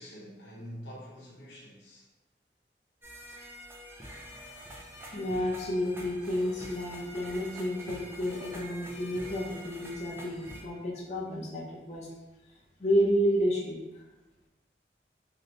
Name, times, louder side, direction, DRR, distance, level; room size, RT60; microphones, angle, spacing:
voice 1, 0.0-2.1, equal, 90° left, -4 dB, 0.8 m, -46 dB
sound 1, 3.0-10.6, equal, 15° right, 0.4 m, -46 dB
voice 2, 5.1-12.1 12.8-14.0, equal, 40° left, -5 dB, 0.5 m, -30 dB
2.8 x 2.5 x 3.2 m, 1.1 s
head